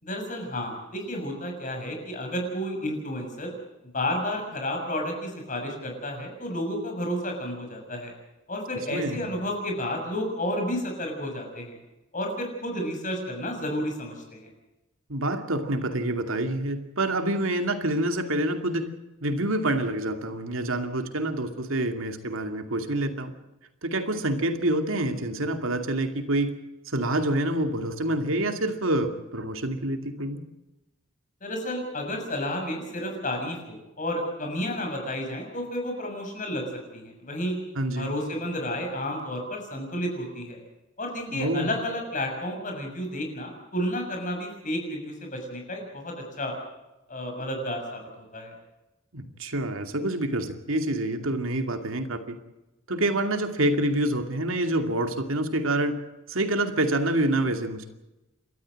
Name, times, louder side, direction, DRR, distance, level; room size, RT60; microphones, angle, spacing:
voice 1, 0.0-3.5 3.9-8.1 8.5-11.7 12.1-14.5 31.4-36.6 36.9-37.6 37.9-40.6 41.0-46.6 47.1-48.5, left 1 dB, 40° left, 3 dB, 6.7 m, -31 dB
voice 2, 8.9-9.3 15.1-18.9 19.2-23.3 23.8-26.5 26.9-30.4 37.8-38.1 41.3-41.7 49.1-52.4 52.9-56.0 56.3-57.9, right 1 dB, 80° right, 6 dB, 2.5 m, -27 dB
29.5 x 13.5 x 7.7 m, 0.99 s
head